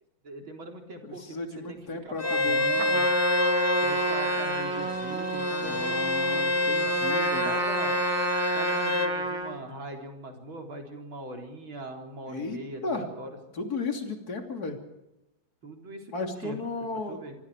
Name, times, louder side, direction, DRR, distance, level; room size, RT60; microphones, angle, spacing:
voice 1, 0.2-3.1 3.8-6.9 7.4-8.0 8.5-13.4 15.6-16.6 16.9-17.3, right 2 dB, 85° right, 3 dB, 4.7 m, -41 dB
voice 2, 1.0-2.7 5.6-7.6 12.3-13.1 13.5-14.8 16.1-17.2, left 3 dB, 50° left, 4 dB, 3.5 m, -35 dB
Bowed string instrument, 2.2-9.1, left 2 dB, 25° left, 2.4 m, -28 dB
Trumpet, 2.7-9.6, right 2 dB, 70° right, 3.0 m, -30 dB
26.5 x 24.5 x 4.9 m, 0.93 s
omnidirectional pair, 2.1 m